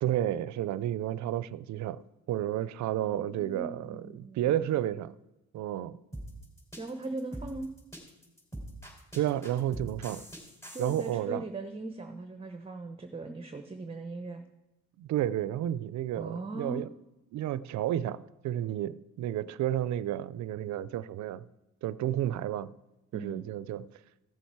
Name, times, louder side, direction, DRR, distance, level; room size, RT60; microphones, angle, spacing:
voice 1, 0.0-2.0 2.3-5.1 5.5-6.0 9.1-10.2 10.8-11.4 15.0-16.9 17.3-21.4 21.8-22.7 23.1-23.9, right 12 dB, 70° right, 0.5 m, -31 dB
voice 2, 3.0-4.5 6.8-7.7 10.7-14.4 16.2-16.8 23.1-23.5, right 3 dB, 20° right, 0.8 m, -39 dB
sound 1, 6.1-11.2, right 1 dB, 10° left, 3.4 m, -43 dB
15.5 x 7.1 x 4.7 m
cardioid pair, 90°, 30 cm